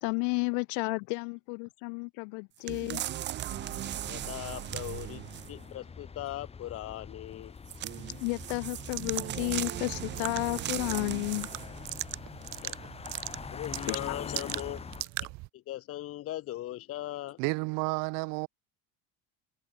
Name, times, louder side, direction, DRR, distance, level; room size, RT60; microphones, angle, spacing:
voice 1, 0.0-3.0 8.2-11.5 13.9-14.0, left 40 dB or more, 70° left, 3.2 m, -32 dB
sound 1, 2.7-5.7 7.7-11.9 12.4-12.5, right 13 dB, 30° right, 0.9 m, -38 dB
sound 2, 3.5-15.0, left 5 dB, 15° left, 7.8 m, -44 dB
voice 2, 4.1-5.2 5.5-7.5 12.6-12.9 13.5-17.4, left 14 dB, 35° left, 2.7 m, -39 dB
sound 3, 8.9-15.5, right 23 dB, 50° right, 0.9 m, -40 dB
voice 3, 17.4-18.5, right 31 dB, 65° right, 2.4 m, -31 dB
cardioid pair, 175°, 37 cm